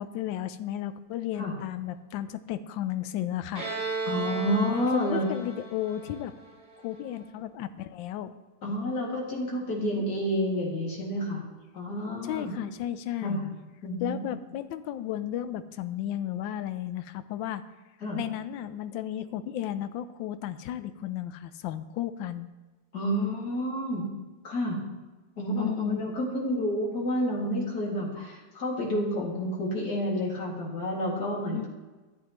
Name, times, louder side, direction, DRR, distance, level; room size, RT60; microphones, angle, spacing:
voice 1, 0.0-3.6 4.7-6.3 6.8-8.3 12.2-13.4 14.0-17.6 18.1-22.5 25.5-26.0 31.5-31.7, left 11 dB, 80° left, 12 dB, 1.3 m, -33 dB
Bowed string instrument, 3.6-7.1, right 3 dB, 75° right, 2.5 m, -35 dB
voice 2, 4.1-5.3 8.6-11.4 11.7-12.5 13.2-13.5 13.8-14.2 18.0-18.2 22.9-24.1 24.4-24.8 25.4-31.7, equal, 55° left, -4 dB, 2.8 m, -29 dB
14.0 x 8.2 x 3.0 m, 1.2 s
omnidirectional pair, 2.1 m